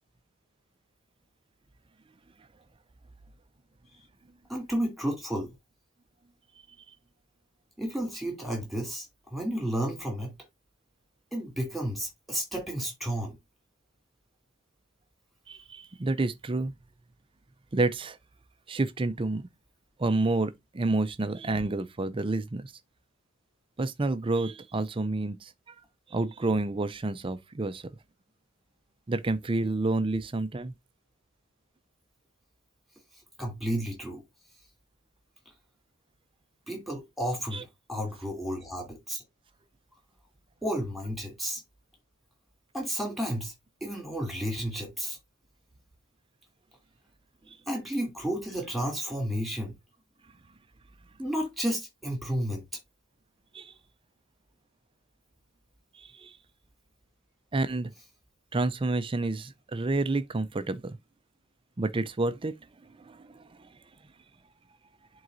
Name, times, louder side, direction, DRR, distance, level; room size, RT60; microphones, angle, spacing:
voice 1, 4.5-5.5 7.8-10.3 11.3-13.4 33.4-34.2 36.7-39.2 40.6-41.6 42.7-43.5 43.8-45.2 47.7-49.7 51.2-52.6, equal, ahead, 2.7 m, -32 dB
voice 2, 15.5-16.7 17.7-18.2 18.7-19.5 20.0-22.7 23.8-25.7 26.1-27.9 29.1-30.7 37.5-37.6 53.5-53.7 56.0-56.3 57.5-57.9 58.5-61.0 61.8-62.5 63.0-63.3 63.6-63.7, right 2 dB, 25° right, 0.4 m, -29 dB
11.0 x 3.9 x 2.6 m
head